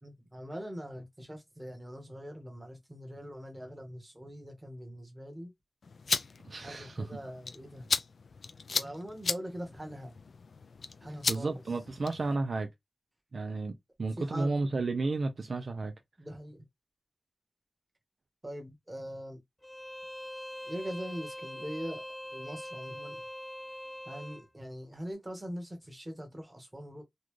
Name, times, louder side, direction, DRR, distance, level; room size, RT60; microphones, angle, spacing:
voice 1, 0.0-5.5 6.6-7.9 8.7-10.2 11.0-11.6 14.2-14.6 16.2-16.7 18.4-19.4 20.7-22.0 22.3-23.2 24.0-27.0, equal, 15° right, 1.4 m, -42 dB
sound 1, 5.8-12.4, left 4 dB, 75° left, 0.3 m, -36 dB
voice 2, 6.4-7.1 11.3-12.7 13.3-15.9, right 3 dB, 60° right, 0.6 m, -32 dB
Bowed string instrument, 19.6-24.4, left 1 dB, 10° left, 0.4 m, -43 dB
4.0 x 2.5 x 3.1 m
wide cardioid pair, 115°, 0 cm